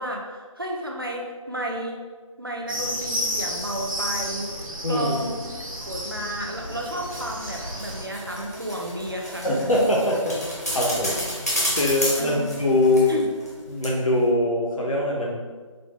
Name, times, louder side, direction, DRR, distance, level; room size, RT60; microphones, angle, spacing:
voice 1, 0.0-2.0 2.4-5.4 5.8-9.5 12.2-12.5 13.1-13.3, right 1 dB, 45° right, 0 dB, 0.4 m, -32 dB
sound 1, 2.7-8.0, equal, 85° right, 0.9 m, -32 dB
voice 2, 4.8-5.1 9.4-10.4 10.7-11.2 11.8-13.1 13.7-15.4, left 1 dB, 75° left, -2 dB, 0.9 m, -22 dB
sound 2, 6.6-13.6 13.8-13.9, equal, 30° left, 0.6 m, -31 dB
4.1 x 2.1 x 3.0 m, 1.4 s
figure-of-eight pair, 180°, 17 cm